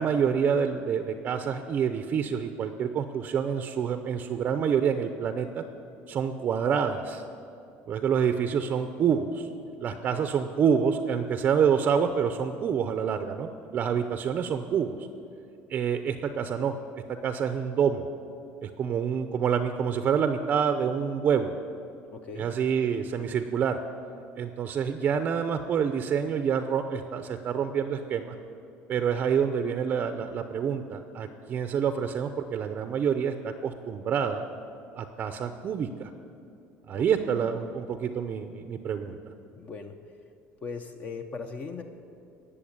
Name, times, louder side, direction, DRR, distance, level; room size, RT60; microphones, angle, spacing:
voice 1, 0.0-5.6 6.1-7.2 7.9-9.5 9.8-15.0 15.7-16.7 17.1-18.0 18.6-21.5 22.4-23.8 24.4-28.3 28.9-34.5 35.0-36.1 36.9-39.2, right 7 dB, 35° right, 8 dB, 0.6 m, -27 dB
voice 2, 22.1-22.5 36.9-37.0 39.6-39.9 40.6-41.8, left 5 dB, 30° left, 6 dB, 0.8 m, -38 dB
18.5 x 7.1 x 8.8 m, 2.6 s
cardioid pair, 160°, 5 cm